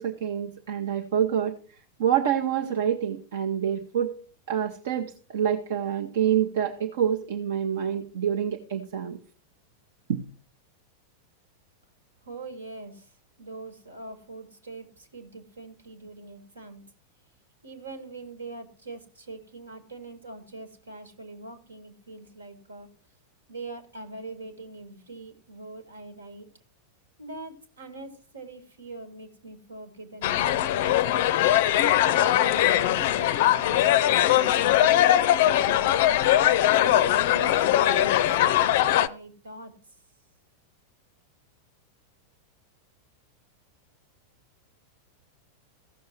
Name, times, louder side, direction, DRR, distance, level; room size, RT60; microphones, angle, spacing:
voice 1, 0.0-1.6 2.0-4.2 4.5-9.2 10.1-10.2, right 9 dB, 55° right, 5 dB, 0.8 m, -27 dB
voice 2, 12.2-16.8 17.6-22.9 23.5-26.5 27.2-31.3 32.0-36.0 36.6-39.7, right 2 dB, 75° right, 10 dB, 1.7 m, -43 dB
sound 1, 30.2-39.1, left 12 dB, 50° left, 0.5 m, -21 dB
15.5 x 6.5 x 4.3 m, 0.41 s
figure-of-eight pair, 90°, 0 cm